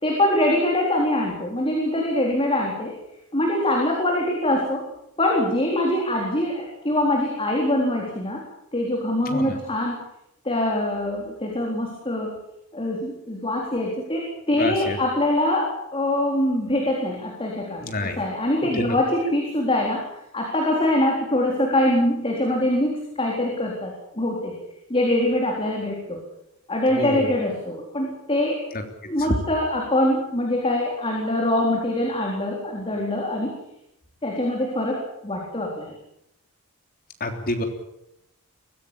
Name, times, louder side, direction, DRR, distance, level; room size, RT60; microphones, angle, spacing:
voice 1, 0.0-2.9 3.3-4.8 5.2-8.4 8.7-10.0 10.4-12.3 12.7-20.0 20.3-24.6 24.9-26.2 26.7-28.6 29.0-33.5 34.2-35.9, left 1 dB, 25° left, -1 dB, 4.0 m, -23 dB
voice 2, 9.3-9.6 14.6-15.0 17.8-18.2 18.8-19.0 27.0-27.3 37.2-37.6, left 1 dB, 40° left, 4 dB, 3.4 m, -28 dB
23.0 x 16.5 x 8.7 m, 0.83 s
head